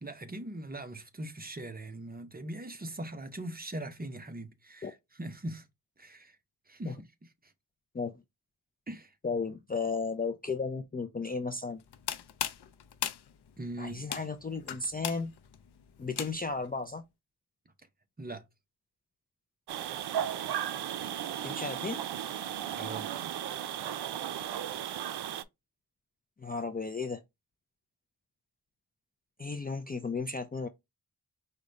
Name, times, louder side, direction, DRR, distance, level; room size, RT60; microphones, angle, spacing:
voice 1, 0.0-5.7 6.0-6.4 6.7-7.5 8.9-9.1 13.6-14.0 18.2-18.4 22.8-23.1, right 1 dB, 25° right, 0.7 m, -41 dB
voice 2, 9.2-11.8 13.8-15.3 16.0-17.0 21.4-22.0 26.4-27.2 29.4-30.7, left 4 dB, 25° left, 0.4 m, -34 dB
sound 1, 11.8-16.7, left 10 dB, 90° left, 0.5 m, -38 dB
sound 2, 19.7-25.4, right 10 dB, 85° right, 0.5 m, -35 dB
4.9 x 2.2 x 3.8 m
wide cardioid pair, 125°, 38 cm